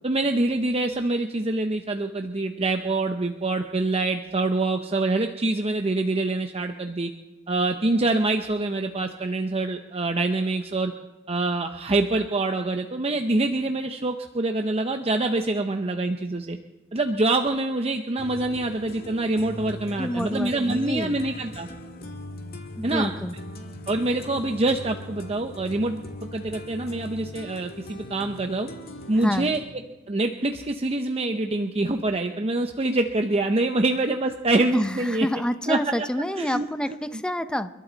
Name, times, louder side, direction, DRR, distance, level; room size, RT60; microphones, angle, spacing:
voice 1, 0.0-7.1 7.5-10.9 11.3-16.6 16.9-21.7 22.8-23.1 23.9-26.1 26.3-28.7 29.1-29.6 30.1-35.3 35.7-36.1 36.4-36.7, right 2 dB, 30° right, 5 dB, 0.7 m, -25 dB
sound 1, 18.2-29.7, left 1 dB, 50° left, 1.8 m, -40 dB
voice 2, 20.0-21.2 22.8-23.4 29.2-29.5 34.7-37.7, equal, 5° left, 10 dB, 0.6 m, -28 dB
29.5 x 12.0 x 4.0 m, 1.2 s
head